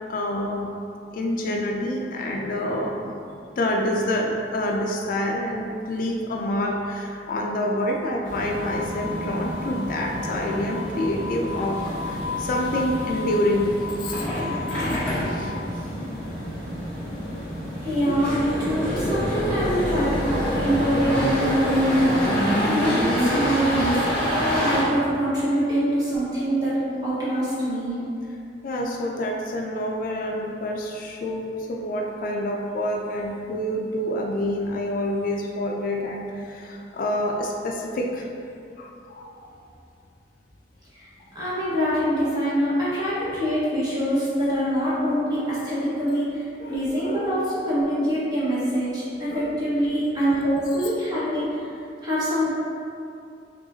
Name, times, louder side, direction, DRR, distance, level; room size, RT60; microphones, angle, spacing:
voice 1, 0.1-0.7 1.1-3.1 3.6-13.7 14.0-14.3 14.9-15.5 18.1-18.2 28.6-38.3 38.8-39.4 46.6-47.6 49.3-49.5 51.1-51.2, left 1 dB, 55° left, 1 dB, 0.3 m, -27 dB
sound 1, 8.2-24.8, equal, 10° left, 1.0 m, -27 dB
voice 2, 17.8-22.3 22.7-24.1 24.4-28.0 40.9-41.1 41.3-51.6 52.0-52.5, equal, 25° right, -10 dB, 1.3 m, -24 dB
5.5 x 2.4 x 2.7 m, 2.6 s
head